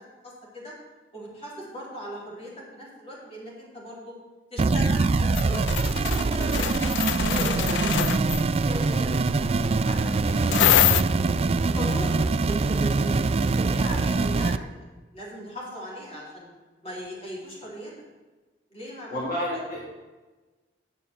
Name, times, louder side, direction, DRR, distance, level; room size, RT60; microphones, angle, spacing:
voice 1, 0.2-0.7 1.1-4.1 4.5-6.7 7.2-11.3 11.7-14.9 15.1-16.5 16.8-17.9 18.7-19.2, equal, 35° left, -4 dB, 3.6 m, -39 dB
sound 1, 4.6-14.6, right 3 dB, 35° right, 0.3 m, -24 dB
sound 2, 5.3-8.4 10.5-11.0, left 12 dB, 80° left, 0.3 m, -24 dB
voice 2, 19.1-19.8, equal, 55° left, -5 dB, 2.0 m, -29 dB
10.0 x 6.7 x 7.2 m, 1.2 s
head